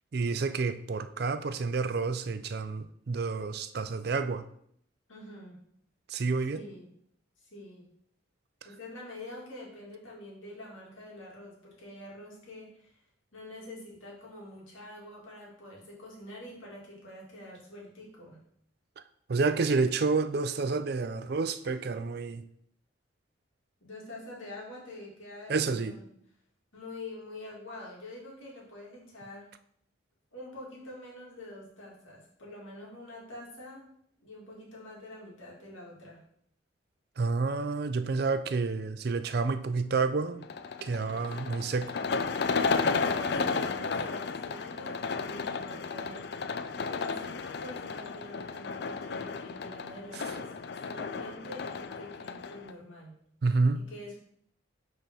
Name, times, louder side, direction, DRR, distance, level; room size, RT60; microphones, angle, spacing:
voice 1, 0.1-4.4 6.1-6.6 19.3-22.4 25.5-25.9 37.2-40.4 40.8-42.0 53.4-53.8, right 4 dB, 50° right, 11 dB, 0.4 m, -29 dB
voice 2, 5.1-5.6 6.4-6.9 7.4-7.9 8.6-13.0 13.3-18.4 23.8-26.0 26.7-29.5 30.3-33.8 34.2-36.2 42.9-46.3 46.9-53.1 53.7-54.1, left 1 dB, 85° left, -3 dB, 2.5 m, -46 dB
sound 1, 40.4-52.7, left 4 dB, 55° left, 0.4 m, -33 dB
5.7 x 4.3 x 5.5 m, 0.68 s
head